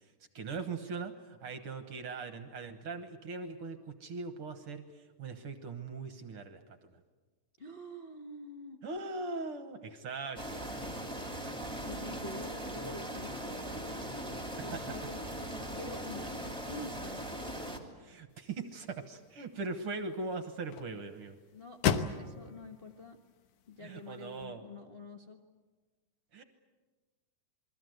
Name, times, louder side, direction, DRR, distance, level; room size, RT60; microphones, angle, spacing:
voice 1, 0.3-6.6 6.9-7.0 8.8-10.7 11.3-11.8 14.3-14.4 18.0-21.4 23.8-24.6 26.3-26.4, right 4 dB, 60° right, 8 dB, 1.7 m, -40 dB
voice 2, 7.6-8.8 11.8-15.3 15.7-16.4 16.7-17.3 21.5-23.2 23.7-25.4, left 2 dB, 45° left, 0 dB, 0.7 m, -47 dB
sound 1, 10.4-17.8, right 1 dB, ahead, 2.3 m, -40 dB
sound 2, 18.3-24.5, left 8 dB, 75° left, 2.5 m, -39 dB
28.5 x 22.0 x 7.9 m, 1.3 s
omnidirectional pair, 3.6 m